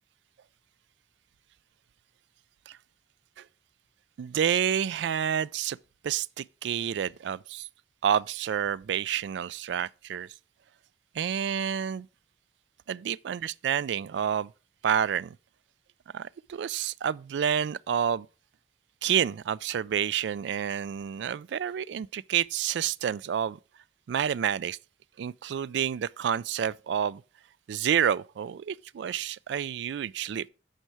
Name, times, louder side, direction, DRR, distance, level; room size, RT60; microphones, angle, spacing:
voice 1, 4.2-5.8 6.0-7.7 8.0-10.3 11.1-12.1 12.9-14.5 14.8-15.4 16.1-18.3 19.0-23.6 24.1-24.8 25.2-27.2 27.7-30.5, right 8 dB, 70° right, 0.3 m, -29 dB
9.1 x 5.6 x 4.7 m
head